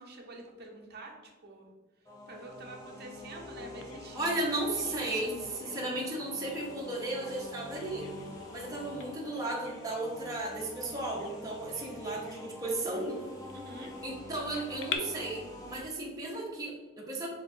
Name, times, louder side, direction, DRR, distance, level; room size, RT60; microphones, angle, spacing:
voice 1, 0.0-1.7 2.3-4.4 4.7-5.0 13.5-13.9, right 2 dB, 50° right, 0 dB, 0.7 m, -47 dB
sound 1, 2.0-15.8, left 1 dB, 15° left, 0.8 m, -46 dB
Bird vocalization bird call bird song, 3.8-15.0, left 8 dB, 65° left, 0.4 m, -48 dB
voice 2, 4.2-8.1 8.5-13.2 14.0-17.3, right 2 dB, 20° right, -3 dB, 0.7 m, -35 dB
4.4 x 3.8 x 2.7 m, 1.3 s
head